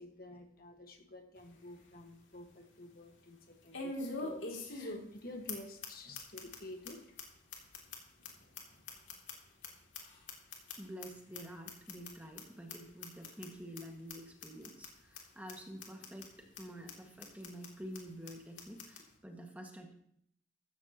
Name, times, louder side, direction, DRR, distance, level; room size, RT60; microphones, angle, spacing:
voice 1, 0.0-7.2 8.9-9.1, left 1 dB, 55° left, 4 dB, 1.5 m, -50 dB
sound 1, 1.4-1.5 1.9-2.0 3.7-5.2 5.5-5.6 5.8-5.9 6.1-6.6 6.8-6.9 7.2-7.3 7.5-9.7 9.9-11.1 11.3-11.4 11.7-12.1 12.4-12.5 12.7-12.8 13.0-13.5 13.8-13.9 14.1-14.2 14.4-14.9 15.1-15.2 15.5-15.6 15.8-16.3 16.6-16.7 16.9-17.0 17.2-17.7 17.9-18.0 18.3-18.4 18.6-19.0, left 3 dB, 85° left, 2.7 m, -43 dB
voice 2, 10.8-19.9, equal, 10° right, 1 dB, 1.7 m, -48 dB
14.5 x 14.0 x 2.9 m, 0.70 s
head